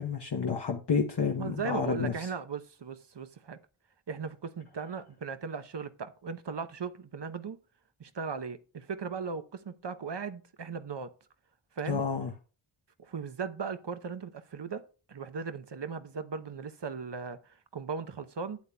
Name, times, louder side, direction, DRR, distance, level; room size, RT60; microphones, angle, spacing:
voice 1, 0.0-2.3 11.9-12.3, left 5 dB, 60° left, 0.9 m, -30 dB
voice 2, 1.4-3.6 4.1-7.6 8.0-11.1 11.8-12.0 13.0-14.8 15.1-18.6, right 5 dB, 65° right, 0.8 m, -37 dB
11.5 x 8.2 x 2.2 m
wide cardioid pair, 50°, 45 cm